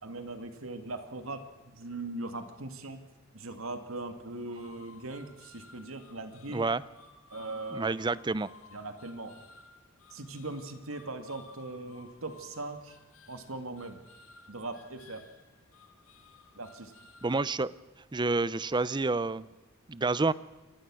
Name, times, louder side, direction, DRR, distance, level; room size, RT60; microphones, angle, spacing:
voice 1, 0.0-3.0 3.3-6.6 7.3-7.9 8.7-9.4 10.1-13.0 13.3-14.0 14.5-15.3 16.5-16.9, right 2 dB, 85° right, 8 dB, 2.2 m, -40 dB
sound 1, 4.5-17.5, left 3 dB, 85° left, 2.1 m, -56 dB
voice 2, 6.5-6.8 7.7-8.5 17.2-17.7 18.1-19.5 19.9-20.3, right 3 dB, 20° right, 18 dB, 0.6 m, -28 dB
27.0 x 16.0 x 6.3 m, 1.1 s
head